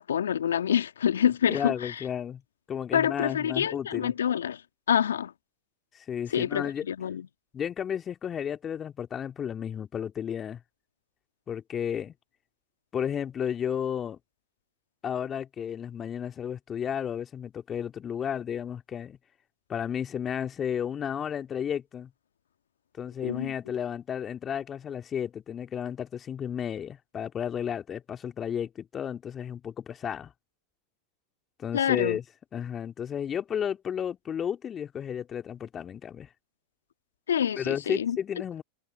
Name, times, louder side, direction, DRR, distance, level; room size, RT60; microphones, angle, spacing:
voice 1, 0.0-2.0 2.9-4.6 4.9-5.3 6.3-7.3 23.2-23.5 31.7-32.2 37.3-38.2, left 9 dB, 75° left, 1.8 m, -27 dB
voice 2, 1.5-2.4 2.7-4.1 5.9-6.8 7.5-10.6 11.5-12.1 12.9-14.2 15.0-19.2 19.7-22.1 23.0-30.3 31.6-32.2 32.5-36.3 37.6-38.6, left 8 dB, 25° left, 2.3 m, -33 dB
figure-of-eight pair, 90°, 0 cm